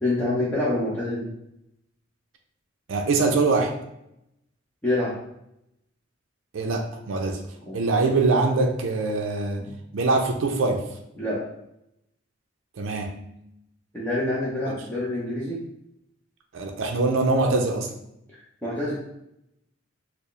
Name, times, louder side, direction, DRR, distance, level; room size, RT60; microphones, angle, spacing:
voice 1, 0.0-1.3 4.8-5.2 7.6-7.8 9.6-9.7 11.2-11.5 13.9-15.6 18.3-19.0, left 1 dB, 10° left, -8 dB, 0.6 m, -27 dB
voice 2, 2.9-3.7 6.5-7.4 7.7-9.6 9.9-10.9 12.8-13.2 14.7-14.8 16.5-17.9, right 3 dB, 80° right, 3 dB, 0.4 m, -23 dB
4.5 x 2.1 x 3.2 m, 0.81 s
head